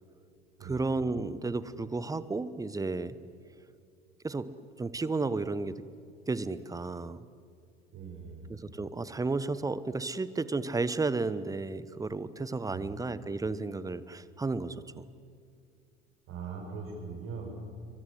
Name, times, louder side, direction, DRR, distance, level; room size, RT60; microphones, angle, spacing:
voice 1, 0.6-3.2 4.2-4.5 4.8-5.8 6.3-7.2 8.5-15.1, right 3 dB, 10° right, 16 dB, 1.0 m, -33 dB
voice 2, 7.9-8.5 12.7-12.9 16.3-17.5, right 5 dB, 40° right, 2 dB, 7.6 m, -41 dB
27.5 x 24.0 x 7.9 m, 2.4 s
figure-of-eight pair, 65°, 33 cm